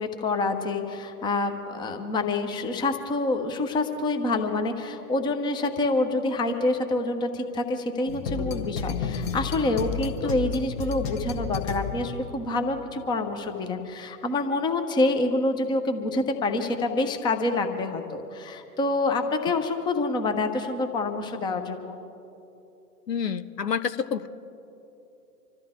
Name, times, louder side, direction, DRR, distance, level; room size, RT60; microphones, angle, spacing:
voice 1, 0.0-22.0, left 2 dB, 10° left, 6 dB, 0.8 m, -27 dB
sound 1, 8.1-12.3, left 5 dB, 35° left, 1.4 m, -31 dB
voice 2, 23.1-24.3, left 7 dB, 85° left, 12 dB, 0.8 m, -28 dB
26.0 x 13.5 x 3.7 m, 2.9 s
figure-of-eight pair, 115°, 47 cm